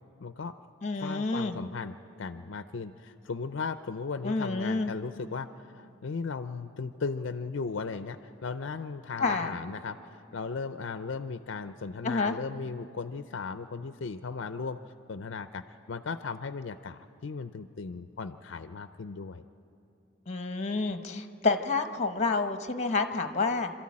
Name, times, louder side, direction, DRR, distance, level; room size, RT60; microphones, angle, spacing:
voice 1, 0.2-0.6 0.9-14.8 15.1-19.4, left 4 dB, 70° left, 10 dB, 0.5 m, -37 dB
voice 2, 0.8-1.6 4.2-4.9 9.2-9.5 12.0-12.4 20.3-23.7, left 3 dB, 35° left, 7 dB, 1.0 m, -29 dB
26.5 x 13.0 x 8.6 m, 2.8 s
head